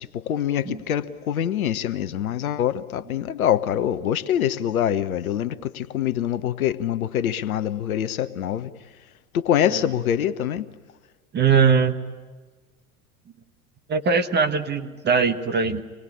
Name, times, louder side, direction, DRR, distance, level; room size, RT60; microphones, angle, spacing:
voice 1, 0.0-8.7 9.3-10.7, left 10 dB, 70° left, 1.0 m, -25 dB
voice 2, 11.3-12.0 13.9-15.8, right 5 dB, 25° right, 1.4 m, -21 dB
26.0 x 19.5 x 10.0 m
figure-of-eight pair, 80°, 45 cm